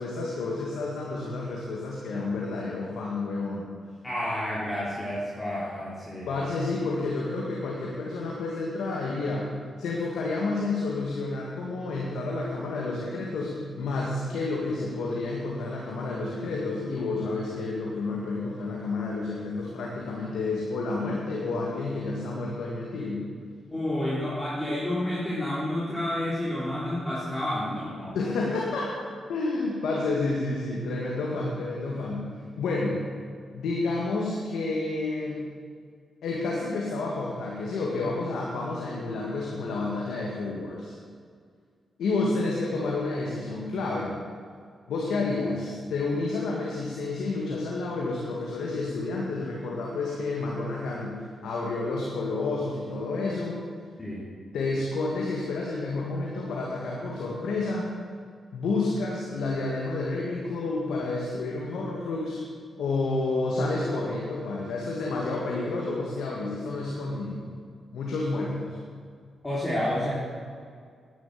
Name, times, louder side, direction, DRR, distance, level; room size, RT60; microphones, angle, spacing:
voice 1, 0.0-3.7 6.3-9.5 9.8-23.3 28.1-28.9 29.3-32.3 32.6-33.0 33.5-35.4 36.2-40.9 42.0-44.1 44.9-53.6 54.5-57.9 58.5-62.4 62.8-67.4 67.9-68.8, left 3 dB, 85° left, -3 dB, 2.1 m, -30 dB
voice 2, 4.0-6.3 23.7-28.2 54.0-54.3 69.4-70.1, left 1 dB, 20° left, -7 dB, 3.6 m, -30 dB
10.5 x 10.5 x 7.8 m, 2.1 s
cardioid pair, 70°, 0 cm